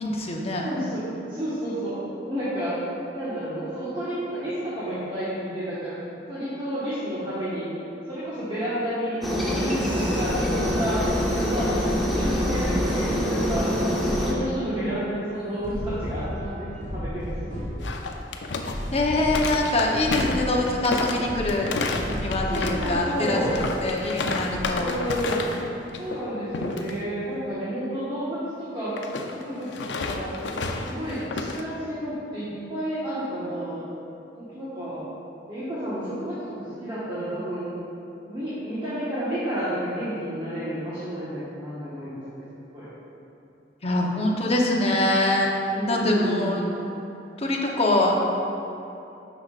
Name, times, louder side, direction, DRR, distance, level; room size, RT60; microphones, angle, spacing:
voice 1, 0.0-0.7 18.9-21.7 22.1-25.0 43.8-45.5 45.9-46.6 47.4-48.2, left 2 dB, 35° left, -1 dB, 0.8 m, -24 dB
voice 2, 0.6-2.0 2.3-2.8 3.1-5.9 6.3-7.7 8.1-11.0 11.3-13.7 14.1-17.3 22.5-23.6 24.8-25.5 26.0-29.0 29.2-30.3 30.8-33.8 34.3-35.0 35.5-37.7 38.3-42.2 42.7-42.9 45.7-46.5, equal, 30° right, -12 dB, 1.4 m, -31 dB
Aircraft, 9.2-14.3, equal, ahead, 0.9 m, -25 dB
sound 1, 9.8-14.8 15.6-18.3 18.6-20.9 21.2-24.0 24.5-25.1, equal, 45° right, 1.6 m, -34 dB
sound 2, 17.8-25.7 25.9-26.2 26.5-26.9 29.0-31.6, left 3 dB, 80° left, 0.5 m, -30 dB
10.0 x 6.1 x 2.4 m, 2.9 s
head